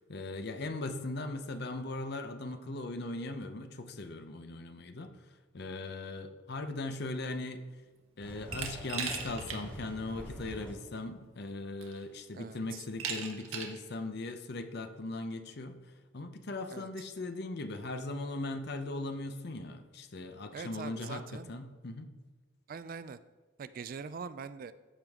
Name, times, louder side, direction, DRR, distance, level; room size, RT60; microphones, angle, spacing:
voice 1, 0.0-5.2 5.5-7.6 8.2-15.8 16.1-22.1, left 2 dB, 50° left, 8 dB, 0.7 m, -39 dB
sound 1, 8.2-10.7, equal, 5° left, 1.9 m, -45 dB
Glass, 8.5-9.6 10.0-10.1 11.2-11.3 11.8-12.2 13.0-13.8, right 6 dB, 85° right, 1.3 m, -38 dB
voice 2, 12.3-12.8 16.7-16.9 20.5-21.5 22.7-23.2 23.6-24.7, right 5 dB, 45° right, 14 dB, 0.3 m, -43 dB
14.0 x 5.1 x 3.6 m, 1.3 s
head